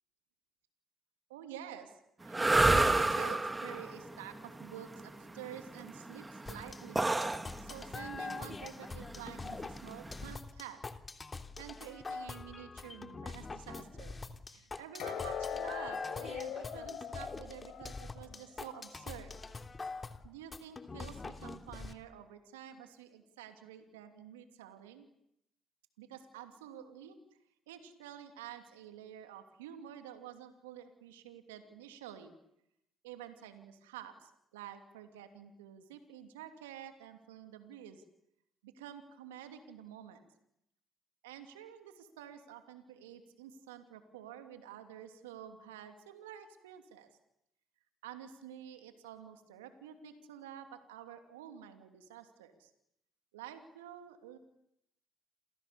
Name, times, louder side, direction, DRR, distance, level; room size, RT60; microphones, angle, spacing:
voice 1, 1.3-7.1 7.6-10.8 11.6-14.2 14.5-19.4 20.2-25.1 26.0-27.2 27.7-32.4 33.0-38.0 38.6-40.2 41.2-47.1 48.0-52.7 53.3-54.4, right 10 dB, 85° right, 7 dB, 2.9 m, -49 dB
sound 1, 2.3-10.3, right 2 dB, 20° right, 3.0 m, -31 dB
sound 2, 2.5-5.7 15.0-18.9 19.3-19.5 20.1-20.2, left 8 dB, 65° left, 6.4 m, -44 dB
sound 3, 6.5-21.9, left 3 dB, 30° left, 3.2 m, -44 dB
29.5 x 29.0 x 7.1 m, 0.78 s
hypercardioid pair, 50°, 0 cm